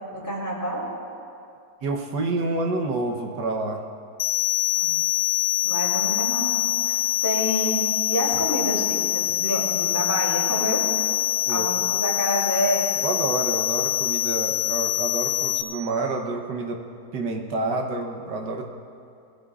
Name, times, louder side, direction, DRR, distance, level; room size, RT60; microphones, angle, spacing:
voice 1, 0.1-0.9 4.7-5.0 5.6-7.8 8.1-10.9 11.5-12.9, equal, 10° left, -5 dB, 3.0 m, -28 dB
voice 2, 1.8-3.8 11.5-11.7 13.0-16.8 17.1-18.7, right 2 dB, 80° right, 1 dB, 1.6 m, -28 dB
sound 1, 4.2-15.6, left 15 dB, 80° left, 1.2 m, -24 dB
20.5 x 16.0 x 2.4 m, 2.4 s
omnidirectional pair, 1.8 m